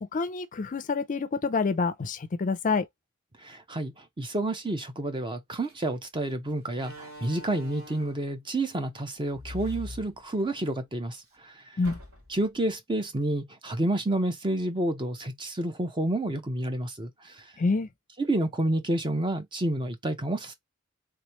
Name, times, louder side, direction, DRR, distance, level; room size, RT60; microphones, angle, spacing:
voice 1, 0.0-2.8 11.8-12.0 17.6-17.9, left 4 dB, 35° left, 0.4 m, -27 dB
voice 2, 3.4-11.8 12.3-17.4 18.2-20.5, right 1 dB, 20° right, 0.7 m, -29 dB
Slam, 5.6-5.8 6.7-8.3 9.3-10.7 11.1-11.2 11.8-12.5, left 1 dB, 75° right, 2.4 m, -43 dB
3.5 x 3.1 x 3.0 m
head